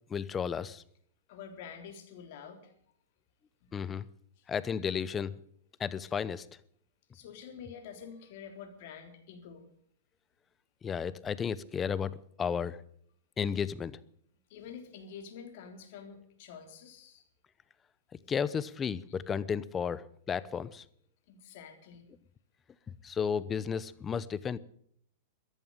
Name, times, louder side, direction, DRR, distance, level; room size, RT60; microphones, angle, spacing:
voice 1, 0.1-0.8 3.7-4.1 4.5-5.4 5.8-6.5 10.8-12.8 13.4-14.0 18.3-20.8 22.9-24.6, left 7 dB, 20° left, 18 dB, 0.8 m, -33 dB
voice 2, 1.3-2.8 3.6-3.7 4.4-4.5 7.1-9.7 14.5-17.2 21.3-22.0, left 7 dB, 55° left, 5 dB, 3.7 m, -47 dB
14.0 x 11.0 x 9.0 m, 0.64 s
hypercardioid pair, 125°, 0 cm